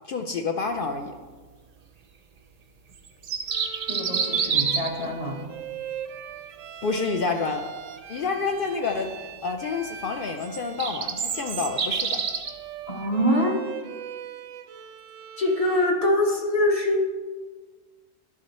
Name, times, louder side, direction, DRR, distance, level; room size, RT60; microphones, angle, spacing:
voice 1, 0.1-1.1 6.8-7.7 8.1-9.1 9.4-12.2, left 4 dB, 65° left, 4 dB, 0.5 m, -28 dB
sound 1, 3.1-5.0 10.4-12.5, right 6 dB, 70° right, 0.3 m, -27 dB
Bowed string instrument, 3.5-16.0, right 9 dB, 90° right, 1.0 m, -41 dB
voice 2, 3.9-5.4 12.9-13.5 15.4-17.0, left 1 dB, 30° left, -1 dB, 1.1 m, -24 dB
11.0 x 3.8 x 4.1 m, 1.4 s
omnidirectional pair, 1.3 m